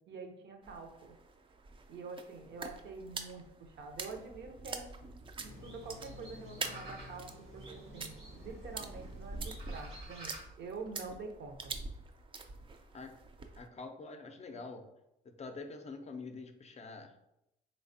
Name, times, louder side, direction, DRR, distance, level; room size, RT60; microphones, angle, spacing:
voice 1, 0.1-1.2 1.9-5.0 5.4-11.7, right 4 dB, 60° right, 4 dB, 0.6 m, -46 dB
sound 1, 0.6-13.7, right 3 dB, 25° right, 0.4 m, -45 dB
sound 2, 5.4-10.4, equal, 85° right, 1.3 m, -50 dB
voice 2, 13.6-14.9 15.4-17.1, left 3 dB, 35° left, 5 dB, 0.5 m, -46 dB
3.3 x 3.3 x 2.6 m, 0.85 s
cardioid pair, 90°, 20 cm